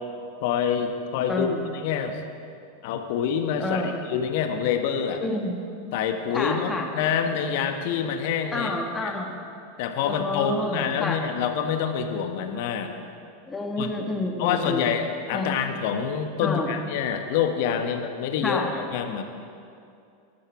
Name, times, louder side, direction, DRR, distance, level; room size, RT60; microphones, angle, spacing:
voice 1, 0.4-1.5 1.8-2.2 2.8-5.2 5.9-8.7 9.0-9.1 9.8-12.9 13.8-13.9 14.4-19.2, left 7 dB, 55° left, 6 dB, 1.4 m, -26 dB
voice 2, 1.3-1.7 3.6-4.0 5.2-5.6 6.3-6.9 8.5-9.4 10.0-11.2 13.5-14.8 15.3-15.6 16.4-16.7 18.4-18.8, left 2 dB, 15° left, 2 dB, 2.0 m, -29 dB
19.5 x 12.0 x 4.9 m, 2.5 s
figure-of-eight pair, 85°, 0 cm